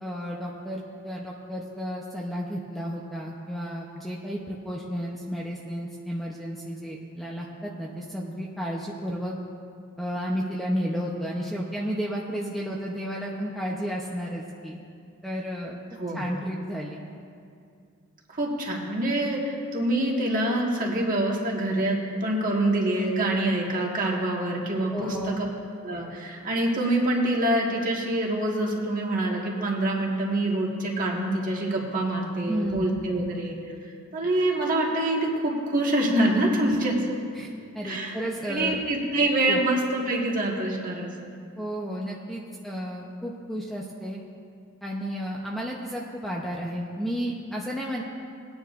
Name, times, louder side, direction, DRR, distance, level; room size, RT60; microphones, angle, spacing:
voice 1, 0.0-9.3 10.0-14.8 15.2-15.8 16.1-17.0 24.9-25.4 32.5-33.3 36.6-36.8 37.3-38.8 39.5-39.6 41.6-44.2 44.8-48.0, equal, ahead, -3 dB, 0.7 m, -32 dB
voice 2, 18.4-25.4 25.8-33.6 34.1-36.9 37.9-38.1 38.5-41.3, right 1 dB, 40° right, -2 dB, 1.6 m, -26 dB
20.0 x 9.5 x 2.5 m, 2.3 s
head